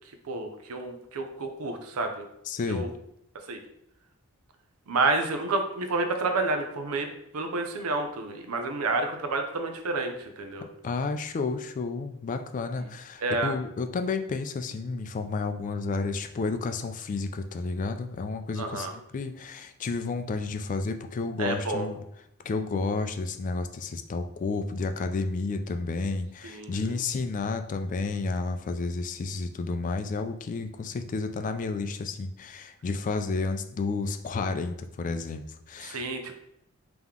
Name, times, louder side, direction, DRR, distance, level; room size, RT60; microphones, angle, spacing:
voice 1, 0.3-2.3 2.7-2.9 3.5-3.6 4.9-10.7 13.2-13.5 18.6-18.9 21.4-21.9 26.4-26.7 35.8-36.4, right 3 dB, 85° right, 6 dB, 0.6 m, -29 dB
voice 2, 2.5-2.9 10.8-22.0 22.4-36.0, left 3 dB, 35° left, 8 dB, 0.3 m, -31 dB
3.6 x 2.9 x 3.6 m, 0.78 s
head